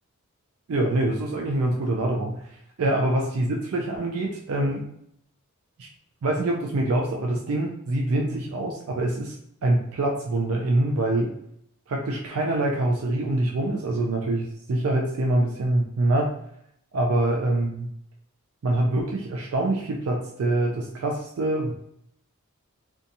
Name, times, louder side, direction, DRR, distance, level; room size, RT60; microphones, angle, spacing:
voice 1, 0.7-4.8 6.2-9.4 9.6-11.3 11.9-16.3 16.9-17.9 18.6-21.7, right 1 dB, 70° right, 0 dB, 0.4 m, -25 dB
2.7 x 2.3 x 2.6 m, 0.72 s
head